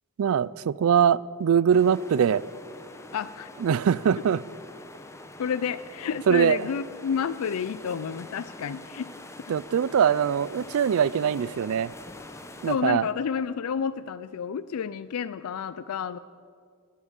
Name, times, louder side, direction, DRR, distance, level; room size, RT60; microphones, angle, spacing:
voice 1, 0.2-2.4 3.6-4.4 6.3-6.6 9.5-11.9 12.6-13.0, right 8 dB, 70° right, 0.3 m, -22 dB
sound 1, 1.7-12.8, left 2 dB, 15° left, 0.8 m, -45 dB
voice 2, 3.1-3.5 5.4-9.1 12.7-16.2, left 7 dB, 80° left, 0.4 m, -30 dB
21.0 x 8.6 x 7.2 m
head